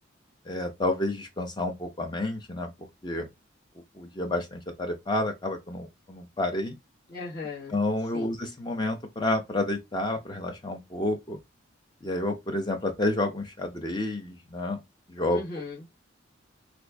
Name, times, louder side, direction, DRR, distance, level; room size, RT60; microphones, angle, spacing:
voice 1, 0.5-2.7 3.0-3.3 4.0-6.7 7.7-11.4 12.0-14.8 15.1-15.4, left 2 dB, 20° left, 0.6 m, -30 dB
voice 2, 7.1-7.8 8.1-8.3 15.3-16.1, left 3 dB, 50° left, 1.4 m, -38 dB
2.9 x 2.5 x 3.4 m
head